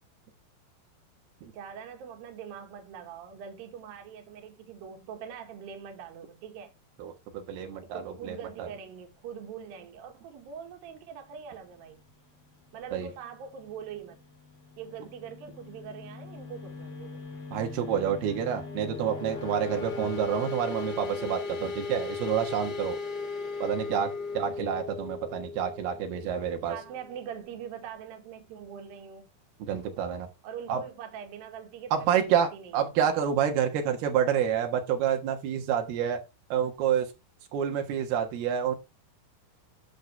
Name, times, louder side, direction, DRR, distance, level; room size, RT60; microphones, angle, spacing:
voice 1, 1.5-6.7 7.8-12.0 12.7-14.2 14.8-17.2 24.4-24.5 26.7-29.3 30.4-33.0, right 7 dB, 75° right, 3.3 m, -43 dB
voice 2, 7.0-8.7 12.9-13.1 17.5-23.0 23.6-26.8 29.6-30.3 30.7-30.8 31.9-36.2 36.5-37.1 37.5-38.8, right 8 dB, 90° right, 3.4 m, -28 dB
sound 1, 14.9-27.5, left 4 dB, 45° left, 2.7 m, -38 dB
11.0 x 6.7 x 3.3 m
omnidirectional pair, 4.4 m